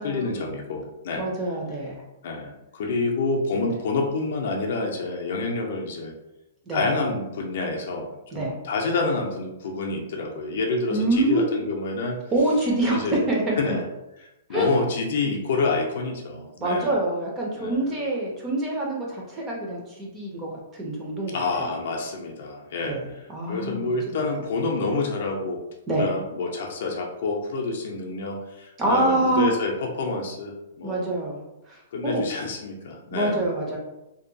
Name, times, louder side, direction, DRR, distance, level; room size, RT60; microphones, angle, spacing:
voice 1, 0.0-1.3 2.2-6.1 6.7-12.2 12.9-13.2 13.6-13.8 14.5-16.9 17.6-17.9 21.3-23.0 23.5-25.6 25.9-31.1 31.9-33.4, left 3 dB, 50° left, 1 dB, 0.5 m, -28 dB
voice 2, 1.2-2.0 6.7-6.8 8.3-8.5 10.9-11.6 12.3-13.8 14.5-14.8 16.6-21.7 22.8-24.3 25.9-26.1 28.8-29.5 30.8-32.3 33.1-33.8, right 1 dB, 15° right, -2 dB, 0.4 m, -26 dB
2.6 x 2.2 x 2.6 m, 0.93 s
hypercardioid pair, 175°, 0 cm